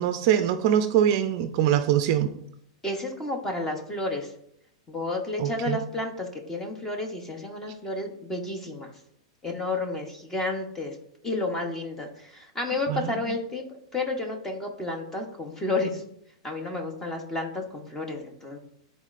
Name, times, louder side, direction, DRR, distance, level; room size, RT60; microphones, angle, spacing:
voice 1, 0.0-2.3 5.4-5.8 12.9-13.3, right 10 dB, 40° right, 9 dB, 0.4 m, -23 dB
voice 2, 2.8-4.3 4.9-8.9 9.4-11.0 11.2-16.0 16.4-18.6, left 2 dB, 10° left, 3 dB, 0.8 m, -31 dB
11.0 x 4.0 x 2.5 m, 0.72 s
supercardioid pair, 165°, 3 cm